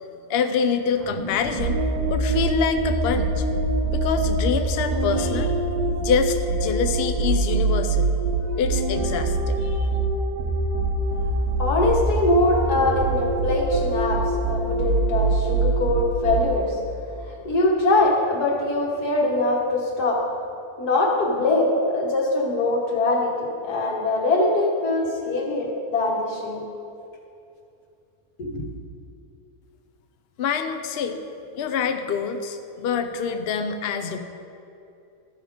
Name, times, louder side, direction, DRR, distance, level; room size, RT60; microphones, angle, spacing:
voice 1, 0.3-1.8 2.1-3.4 3.9-5.5 6.0-8.1 8.5-9.9 30.4-31.2 31.5-34.2, left 6 dB, 60° left, 8 dB, 0.7 m, -25 dB
sound 1, 0.9-5.7, left 1 dB, 25° left, 2.8 m, -41 dB
sound 2, 1.6-16.7, right 2 dB, 75° right, 1.6 m, -24 dB
voice 2, 11.6-16.8 17.5-20.2 20.8-26.6 28.4-28.6, left 2 dB, 85° left, -1 dB, 2.0 m, -22 dB
13.0 x 5.7 x 5.0 m, 2.7 s
omnidirectional pair, 1.6 m